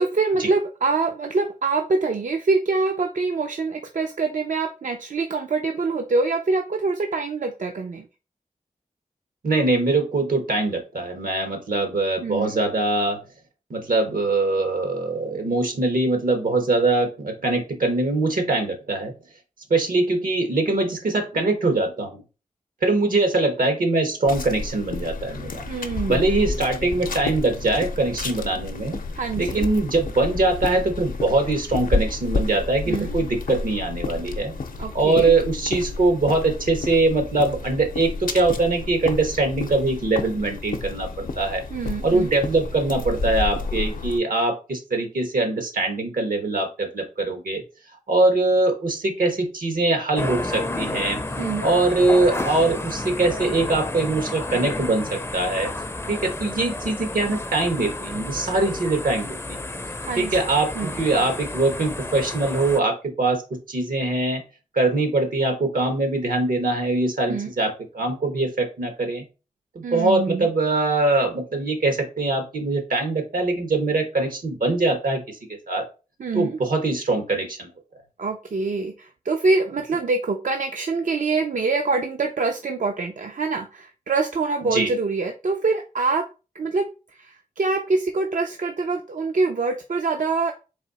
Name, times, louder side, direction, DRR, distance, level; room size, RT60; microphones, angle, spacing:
voice 1, 0.0-8.1 12.2-12.5 25.7-26.3 29.1-29.7 32.8-33.1 34.8-35.3 41.7-42.3 51.4-51.7 60.0-60.4 60.7-60.9 67.3-67.5 69.8-70.5 76.2-76.6 78.2-86.3 86.5-90.5, right 3 dB, 65° right, 5 dB, 0.5 m, -25 dB
voice 2, 9.4-13.2 13.7-19.1 19.7-22.2 22.8-25.7 26.1-29.0 29.4-34.5 34.9-41.6 42.0-47.6 48.1-51.2 51.6-55.7 56.1-59.6 60.2-60.7 61.0-64.4 64.7-69.2 69.7-75.4 75.7-75.8 76.3-77.7 84.7-84.9, right 2 dB, 80° right, 5 dB, 1.1 m, -22 dB
sound 1, 24.3-44.2, left 3 dB, 80° left, 0.6 m, -31 dB
sound 2, 50.2-62.8, left 2 dB, 20° left, 0.4 m, -31 dB
4.1 x 2.7 x 4.0 m, 0.32 s
cardioid pair, 50°, 14 cm